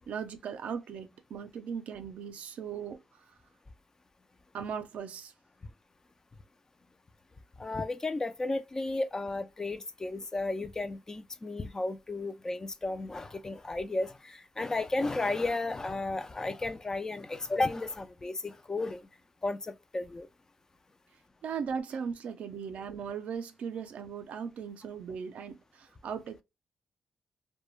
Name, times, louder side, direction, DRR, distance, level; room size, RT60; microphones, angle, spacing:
voice 1, 0.1-3.2 4.5-5.3 21.4-26.4, right 6 dB, 75° right, 0.4 m, -38 dB
voice 2, 7.6-19.0 19.4-20.3, left 2 dB, 25° left, 0.3 m, -33 dB
2.3 x 2.1 x 3.0 m
cardioid pair, 95°, 2 cm